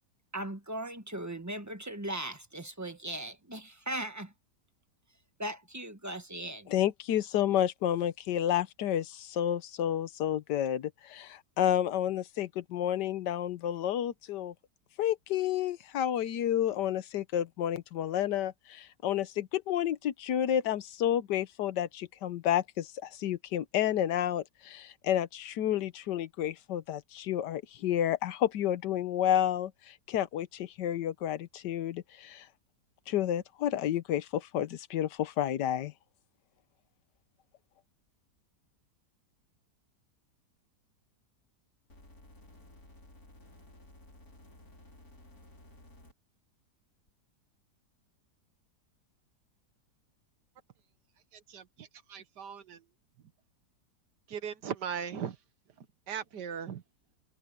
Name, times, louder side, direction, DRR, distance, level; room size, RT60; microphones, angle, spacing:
voice 1, 0.3-4.3 5.4-6.7, right 1 dB, 10° right, 1.3 m, -38 dB
voice 2, 6.7-14.5 15.0-32.5 33.1-35.9, left 11 dB, 90° left, 1.5 m, -30 dB
sound 1, 41.9-46.1 47.1-47.2, left 2 dB, 60° left, 4.9 m, -55 dB
voice 3, 52.1-52.8 54.3-55.4 56.1-56.8, right 8 dB, 80° right, 1.9 m, -37 dB
omnidirectional pair, 1.8 m